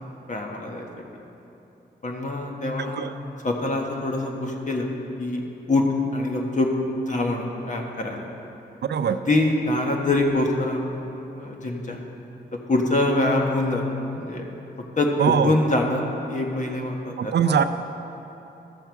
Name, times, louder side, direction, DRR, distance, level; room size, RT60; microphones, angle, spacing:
voice 1, 0.3-0.9 2.0-3.1 3.4-4.9 5.2-5.4 5.7-5.8 6.1-6.7 7.0-8.2 9.1-11.1 11.3-12.0 12.5-14.4 15.0-15.1 15.4-17.3, left 2 dB, 45° left, 1 dB, 1.4 m, -24 dB
voice 2, 2.8-3.2 8.8-9.2 15.2-15.6 17.2-17.6, right 7 dB, 70° right, 10 dB, 0.4 m, -22 dB
12.5 x 7.0 x 4.7 m, 3.0 s
cardioid pair, 60°, 18 cm